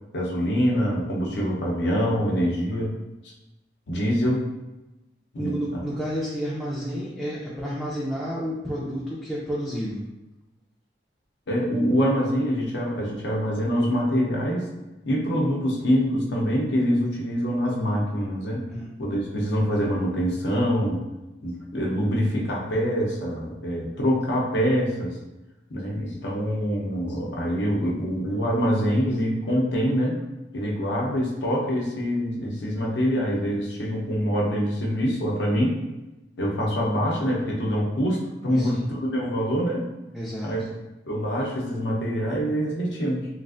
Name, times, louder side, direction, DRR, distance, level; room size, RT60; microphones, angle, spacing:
voice 1, 0.1-2.9 3.2-3.3 3.9-4.4 5.3-5.8 11.5-14.6 15.0-18.6 19.0-21.0 21.4-25.1 25.7-30.2 30.5-35.8 36.4-39.8 40.4-40.6 41.1-43.3, equal, 70° left, -2 dB, 0.7 m, -25 dB
voice 2, 5.4-10.0 18.7-18.9 38.5-38.8 40.1-40.5, equal, 5° left, -8 dB, 0.4 m, -30 dB
3.2 x 2.4 x 2.5 m, 1.0 s
head